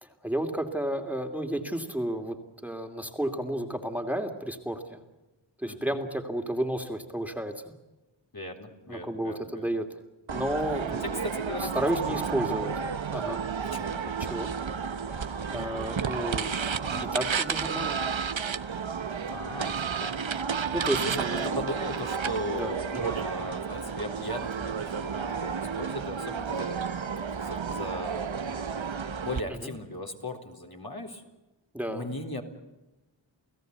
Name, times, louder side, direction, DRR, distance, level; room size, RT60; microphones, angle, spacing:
voice 1, 0.0-5.0 5.6-7.7 8.9-9.8 10.3-12.7 13.1-13.4 14.2-14.5 15.1-18.0 20.7-21.7 22.5-23.1 29.5-29.7 31.7-32.1, right 1 dB, 5° right, 5 dB, 2.8 m, -32 dB
voice 2, 5.7-6.0 8.3-9.8 11.0-12.2 12.5-12.8 13.7-14.0 19.3-20.5 21.0-26.8 27.3-31.2 31.9-32.4, left 1 dB, 50° left, 2 dB, 4.1 m, -38 dB
sound 1, 10.3-29.4, right 6 dB, 80° right, 1.0 m, -32 dB
30.0 x 17.0 x 8.2 m, 1.1 s
wide cardioid pair, 40°, 45 cm